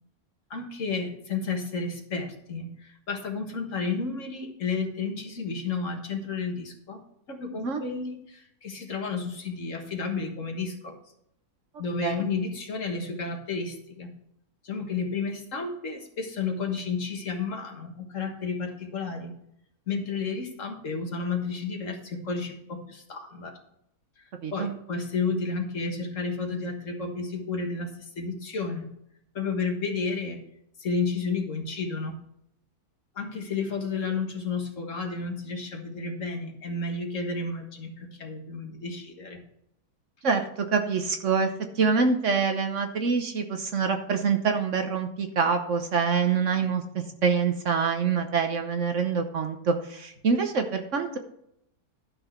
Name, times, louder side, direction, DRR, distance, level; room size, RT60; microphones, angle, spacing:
voice 1, 0.5-7.0 7.3-11.0 11.8-14.1 14.6-19.3 19.9-23.6 24.2-24.3 24.5-28.9 29.4-30.4 30.8-32.2 33.2-39.4, left 4 dB, 55° left, 3 dB, 1.8 m, -32 dB
voice 2, 24.4-24.7 40.2-41.5 41.7-51.2, right 5 dB, 55° right, 6 dB, 1.2 m, -25 dB
11.5 x 6.3 x 4.5 m, 0.75 s
omnidirectional pair, 1.6 m